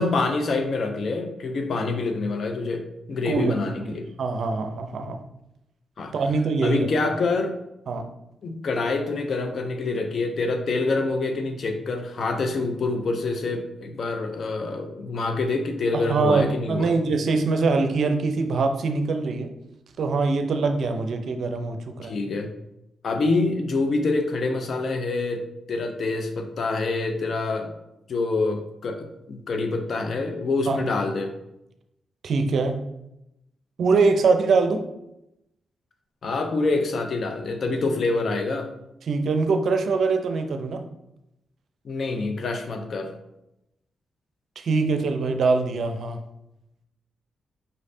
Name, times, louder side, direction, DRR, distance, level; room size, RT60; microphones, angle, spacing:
voice 1, 0.0-4.1 6.0-6.1 6.6-7.6 8.4-17.0 22.0-22.5 23.0-25.4 25.7-27.7 28.1-31.3 36.2-38.7 41.8-43.1, left 3 dB, 60° left, 5 dB, 0.6 m, -26 dB
voice 2, 3.3-5.2 6.1-7.1 7.9-8.1 15.9-19.5 20.0-22.2 30.7-30.8 32.2-32.8 33.8-34.8 39.0-40.8 44.6-46.2, right 4 dB, 65° right, 6 dB, 0.5 m, -23 dB
5.4 x 3.2 x 2.7 m, 0.86 s
supercardioid pair, 55°, 0 cm